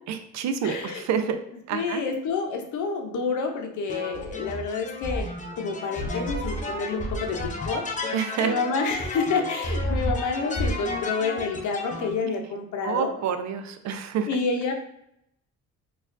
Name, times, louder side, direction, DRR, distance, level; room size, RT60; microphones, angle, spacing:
voice 1, 0.1-1.4 1.7-2.0 8.1-8.5 12.2-12.3 12.8-14.3, right 7 dB, 65° right, 8 dB, 0.5 m, -28 dB
voice 2, 0.6-1.0 1.7-5.3 5.6-7.8 8.4-13.1 14.3-14.7, left 4 dB, 75° left, 4 dB, 0.7 m, -28 dB
sound 1, 3.9-12.1, left 1 dB, 25° left, 0.6 m, -31 dB
4.2 x 2.4 x 2.5 m, 0.77 s
cardioid pair, 90°, 30 cm